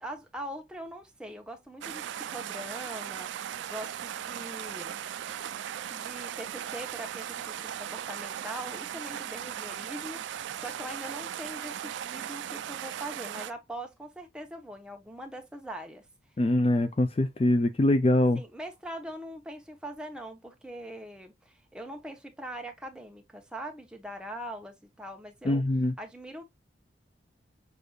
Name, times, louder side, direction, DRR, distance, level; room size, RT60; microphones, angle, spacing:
voice 1, 0.0-5.0 5.9-16.1 18.3-25.6 26.0-26.4, right 1 dB, 5° right, 0.8 m, -42 dB
sound 1, 1.8-13.5, right 10 dB, 80° right, 0.3 m, -38 dB
voice 2, 16.4-18.4 25.4-25.9, left 1 dB, 30° left, 0.3 m, -23 dB
6.5 x 2.6 x 2.3 m
head